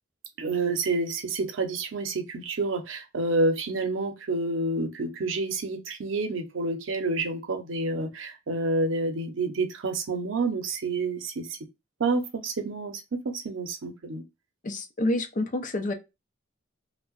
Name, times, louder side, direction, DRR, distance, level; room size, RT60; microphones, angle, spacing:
voice 1, 0.4-11.5 12.0-14.2, right 3 dB, 85° right, 0.6 m, -29 dB
voice 2, 14.6-15.9, left 1 dB, 40° left, 0.5 m, -28 dB
2.7 x 2.1 x 2.3 m
head